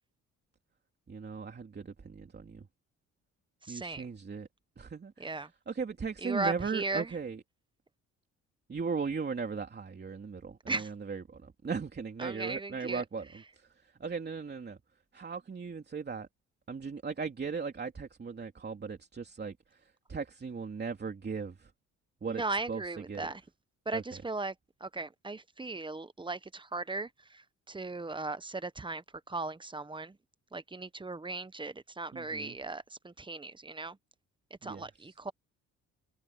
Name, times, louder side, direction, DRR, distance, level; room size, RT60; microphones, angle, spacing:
voice 1, 1.1-2.7 3.7-4.5 4.8-7.4 8.7-14.8 15.1-16.3 16.7-21.7 22.2-22.4 22.7-22.8 23.1-23.3 23.9-24.0 32.1-32.6 34.6-34.9, right 5 dB, 35° right, 3.1 m, -38 dB
voice 2, 3.6-4.1 5.2-5.5 6.2-7.1 10.7-10.9 12.2-13.0 22.3-23.4 23.9-24.5 24.8-30.2 30.5-34.0 34.6-35.3, right 3 dB, 15° right, 1.0 m, -37 dB
cardioid pair, 90°, 30 cm